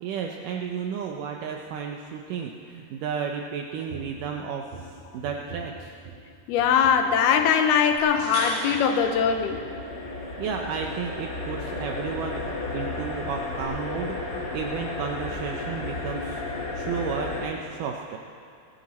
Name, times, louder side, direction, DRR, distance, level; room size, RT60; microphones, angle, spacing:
voice 1, 0.0-5.9 10.4-18.2, right 6 dB, 80° right, 2 dB, 1.9 m, -33 dB
sound 1, 3.9-4.3 4.7-6.3 6.6-7.1 7.4-7.6 7.9-10.3 10.6-11.0 11.3-11.6 11.9-12.0, right 3 dB, 45° right, 4.2 m, -45 dB
voice 2, 6.5-9.7, left 7 dB, 80° left, 6 dB, 2.7 m, -21 dB
sound 2, 8.0-10.2 13.6-13.7, right 3 dB, 65° right, 3.0 m, -36 dB
sound 3, 9.0-17.5, left 3 dB, 40° left, 1.6 m, -33 dB
19.5 x 14.0 x 4.2 m, 2.5 s
omnidirectional pair, 4.5 m